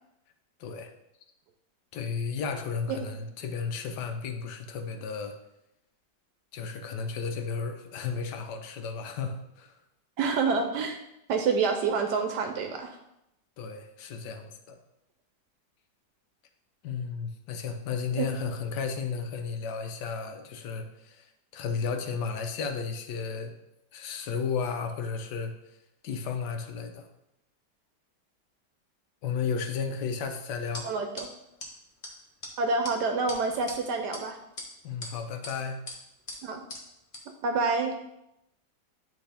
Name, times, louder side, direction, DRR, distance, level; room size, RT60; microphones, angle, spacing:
voice 1, 0.6-0.9 1.9-5.4 6.5-9.7 13.6-14.8 16.8-23.5 23.9-25.5 26.0-27.1 29.2-30.9 34.8-35.9, left 5 dB, 75° left, 6 dB, 1.3 m, -33 dB
voice 2, 10.2-11.0 11.3-13.0 18.2-18.3 30.8-31.3 32.6-34.4 36.4-36.6 37.4-37.9, right 4 dB, 75° right, 5 dB, 1.1 m, -27 dB
sound 1, 30.7-30.8 31.2-31.3 31.6-31.7 32.0-32.1 32.4-32.5 32.8-32.9 33.3-33.8 34.1-34.2 34.6-35.1 35.4-35.5 35.9-36.0 36.3-36.4 36.7-36.8 37.1-37.2, left 1 dB, 35° left, 1.1 m, -39 dB
10.0 x 3.4 x 3.4 m, 0.84 s
omnidirectional pair, 1.9 m